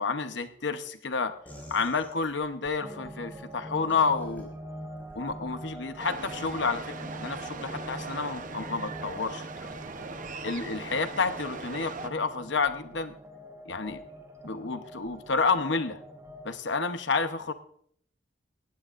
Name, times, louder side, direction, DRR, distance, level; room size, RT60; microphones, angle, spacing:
voice 1, 0.0-1.3 1.7-4.5 5.1-9.7 10.4-13.2 13.7-14.0 14.4-16.0 16.4-17.5, left 4 dB, 65° left, 9 dB, 1.0 m, -30 dB
sound 1, 1.4-2.8 3.9-4.4 5.0-5.4 6.2-6.5, equal, 10° left, 4.8 m, -48 dB
sound 2, 2.8-16.6, right 1 dB, 15° right, 1.4 m, -44 dB
sound 3, 6.0-12.1, right 4 dB, 45° right, 0.9 m, -40 dB
19.0 x 15.5 x 2.6 m, 0.65 s
head